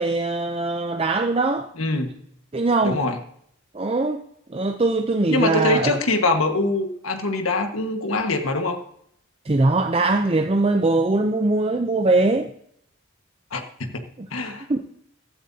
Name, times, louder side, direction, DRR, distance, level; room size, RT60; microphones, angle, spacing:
voice 1, 0.0-1.7 2.5-3.0 3.7-4.2 4.5-6.0 9.5-12.5 14.2-14.8, right 2 dB, 30° right, 0.5 m, -21 dB
voice 2, 1.8-2.2 2.8-3.2 5.3-8.8 13.5-14.0 14.3-14.6, left 2 dB, 90° left, 1.5 m, -23 dB
15.0 x 13.0 x 2.8 m
head